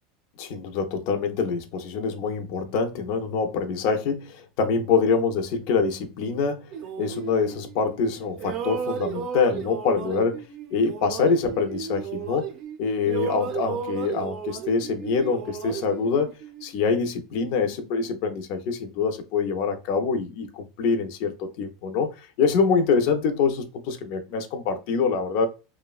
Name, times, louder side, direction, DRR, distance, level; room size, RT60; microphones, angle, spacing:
voice 1, 0.4-6.6 7.0-10.4 10.7-12.5 12.8-16.3 16.6-25.5, left 5 dB, 55° left, 0.5 m, -25 dB
sound 1, 6.7-8.1 8.4-12.8 13.0-16.9, right 7 dB, 40° right, 0.5 m, -34 dB
3.0 x 2.1 x 2.3 m
supercardioid pair, 165°, 0 cm